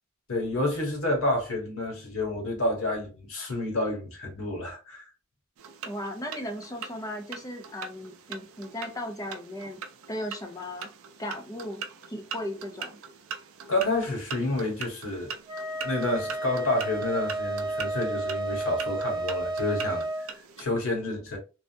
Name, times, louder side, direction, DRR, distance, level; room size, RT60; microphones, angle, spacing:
voice 1, 0.3-5.1 13.7-15.3 15.8-21.4, left 2 dB, 70° left, 1.2 m, -29 dB
sound 1, 5.6-20.6, right 6 dB, 75° right, 0.4 m, -42 dB
voice 2, 5.8-9.8 10.1-10.9 11.2-11.8 12.1-13.0, left 1 dB, 15° left, 0.6 m, -36 dB
Wind instrument woodwind instrument, 15.5-20.3, right 2 dB, 20° right, 0.6 m, -32 dB
3.3 x 2.0 x 2.7 m
head